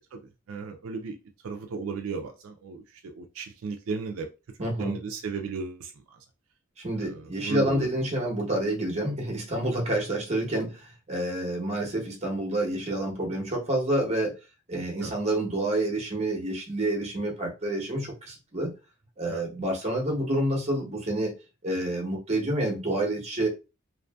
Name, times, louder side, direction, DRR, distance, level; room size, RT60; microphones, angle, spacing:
voice 1, 0.5-1.2 1.4-4.3 4.6-5.9 7.0-7.9 15.0-15.2 19.3-19.4, right 5 dB, 75° right, 0.4 m, -35 dB
voice 2, 4.6-5.0 6.8-14.4 14.7-18.7 19.2-21.3 21.6-23.5, right 1 dB, 35° right, 0.9 m, -28 dB
2.5 x 2.5 x 2.2 m
head